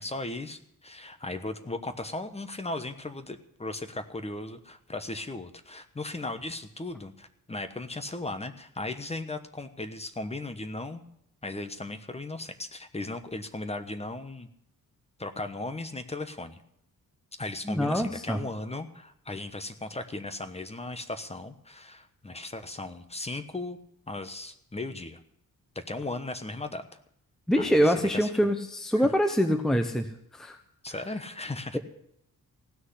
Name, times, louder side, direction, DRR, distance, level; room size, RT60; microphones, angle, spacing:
voice 1, 0.0-11.0 11.4-14.5 15.2-16.6 17.4-23.8 24.1-25.2 25.7-26.8 27.6-28.3 28.9-29.1 30.8-31.8, left 2 dB, 15° left, 8 dB, 1.1 m, -37 dB
voice 2, 17.6-18.4 27.5-30.1 30.3-30.6, equal, ahead, 7 dB, 0.9 m, -24 dB
16.5 x 6.3 x 9.8 m, 0.72 s
wide cardioid pair, 120°, 35 cm